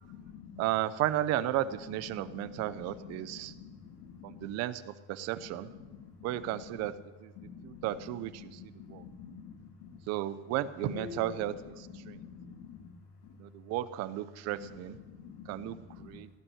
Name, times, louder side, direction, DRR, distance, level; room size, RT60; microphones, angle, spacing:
voice 1, 0.0-0.7 2.1-4.5 5.4-6.9 7.4-7.9 8.4-10.0 10.8-12.9 13.2-13.4 14.7-16.2, left 6 dB, 70° left, -1 dB, 3.0 m, -47 dB
voice 2, 0.6-3.5 4.2-5.7 6.2-6.9 7.2-7.3 7.6-9.0 10.1-12.2 13.4-15.0 15.5-16.3, right 13 dB, 45° right, 15 dB, 0.7 m, -34 dB
17.0 x 6.1 x 10.0 m, 1.2 s
supercardioid pair, 145°, 35 cm